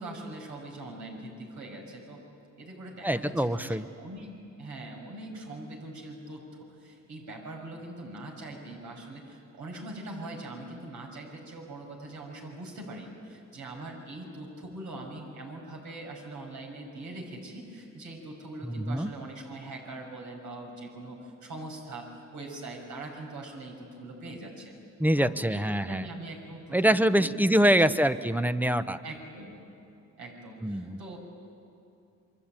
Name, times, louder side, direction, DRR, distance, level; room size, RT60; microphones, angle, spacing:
voice 1, 0.0-2.2 2.6-4.3 4.6-6.4 6.8-24.7 25.1-27.3 27.9-28.0 29.0-29.5 30.2-31.2, right 2 dB, 75° right, 0 dB, 6.3 m, -42 dB
voice 2, 3.0-3.8 18.6-19.1 25.0-26.1 26.7-29.0 30.6-31.0, right 1 dB, 5° right, 12 dB, 0.9 m, -25 dB
27.0 x 23.0 x 9.0 m, 2.6 s
cardioid pair, 90°, 30 cm